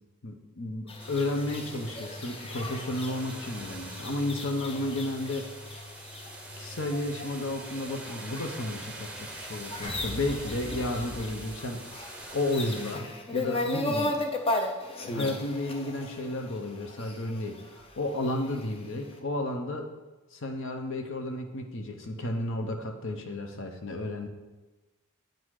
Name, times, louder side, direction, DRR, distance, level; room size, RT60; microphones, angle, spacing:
voice 1, 0.2-5.5 6.6-11.8 12.3-14.1 15.0-19.9 20.3-24.3, left 1 dB, 60° left, 4 dB, 0.9 m, -32 dB
sound 1, 0.9-18.7, left 1 dB, 25° left, 0.5 m, -37 dB
sound 2, 1.0-12.9, right 2 dB, 5° right, 0.7 m, -45 dB
sound 3, 9.8-12.2, equal, 85° left, 1.5 m, -41 dB
8.9 x 3.9 x 4.8 m, 1.2 s
head